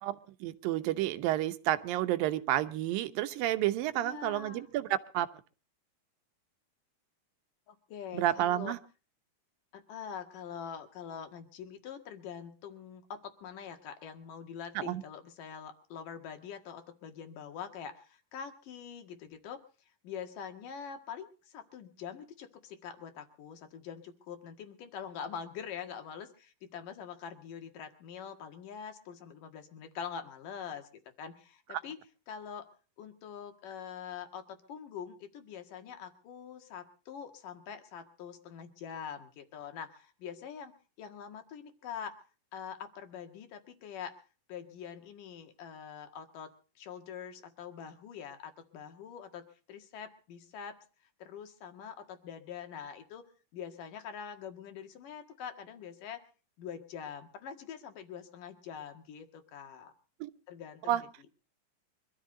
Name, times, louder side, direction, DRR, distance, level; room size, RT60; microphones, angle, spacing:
voice 1, 0.0-5.3 8.1-8.8 14.8-15.0 60.2-60.3 60.9-61.0, right 13 dB, 85° right, 11 dB, 2.7 m, -30 dB
voice 2, 3.9-4.7 7.7-8.7 9.7-19.6 20.0-30.9 31.2-32.0 32.3-32.7 33.0-42.2 42.5-44.1 44.5-50.8 51.2-53.2 53.5-56.2 56.6-59.9 60.5-61.1, left 7 dB, 70° left, 7 dB, 3.4 m, -44 dB
24.5 x 13.5 x 3.9 m, 0.36 s
omnidirectional pair, 4.0 m